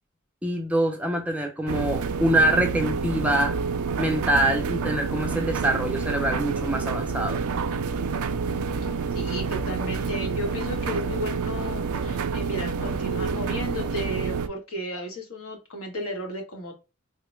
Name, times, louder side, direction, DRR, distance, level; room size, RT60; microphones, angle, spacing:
voice 1, 0.4-3.6 4.0-7.4, right 1 dB, 5° right, 0.4 m, -24 dB
sound 1, 1.7-14.5, right 5 dB, 85° right, 0.4 m, -28 dB
voice 2, 9.1-16.7, equal, 75° left, 1.2 m, -34 dB
3.7 x 2.1 x 3.1 m
head